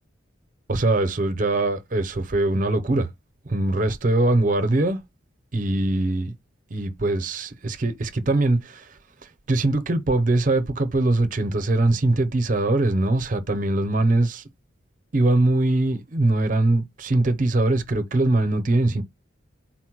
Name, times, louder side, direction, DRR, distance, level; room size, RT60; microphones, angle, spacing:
voice 1, 0.7-3.1 3.5-5.0 5.5-6.3 6.7-8.9 9.5-14.4 15.1-19.0, right 2 dB, 45° right, 0.6 m, -22 dB
4.1 x 2.1 x 4.5 m
head